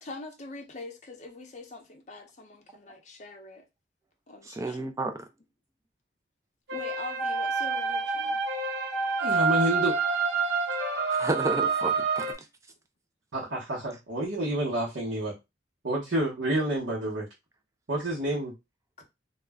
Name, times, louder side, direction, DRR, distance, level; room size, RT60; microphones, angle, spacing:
voice 1, 0.0-3.6 4.3-4.9 6.7-8.4 19.0-19.1, left 3 dB, 40° left, 0.6 m, -43 dB
voice 2, 4.4-5.3 11.1-12.5, right 2 dB, 15° right, 0.3 m, -32 dB
sound 1, 6.7-12.3, right 4 dB, 60° right, 0.6 m, -27 dB
voice 3, 9.2-9.9 13.3-15.3 15.8-17.3 17.9-18.5, right 1 dB, 90° right, 0.9 m, -29 dB
2.3 x 2.1 x 3.4 m
head